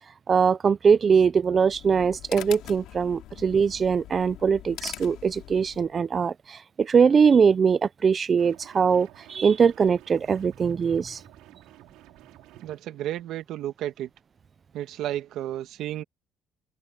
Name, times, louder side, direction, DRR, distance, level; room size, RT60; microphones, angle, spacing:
voice 1, 0.3-11.2, right 6 dB, 30° right, 0.4 m, -22 dB
sound 1, 1.5-5.9, left 13 dB, 75° left, 2.5 m, -43 dB
sound 2, 8.4-12.8, right 16 dB, 90° right, 5.8 m, -52 dB
voice 2, 12.6-14.1 14.7-16.0, right 12 dB, 65° right, 1.7 m, -32 dB
cardioid pair, 145°, 0 cm